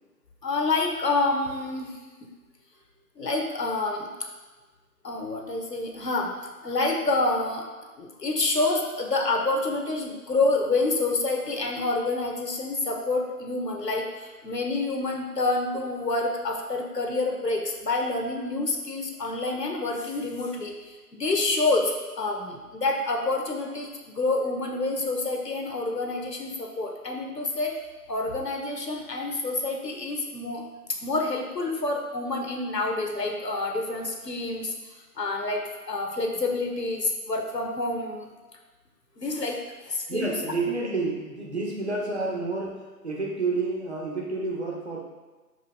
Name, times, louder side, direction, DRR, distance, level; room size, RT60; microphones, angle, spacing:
voice 1, 0.4-2.0 3.2-4.1 5.0-6.3 6.6-7.7 8.0-27.8 28.1-38.3 39.2-39.6 39.9-40.3 40.8-40.9, left 2 dB, 85° left, 2 dB, 1.5 m, -28 dB
voice 2, 40.1-45.0, right 3 dB, 40° right, -2 dB, 1.4 m, -29 dB
11.5 x 5.3 x 2.3 m, 1.3 s
figure-of-eight pair, 175°, 48 cm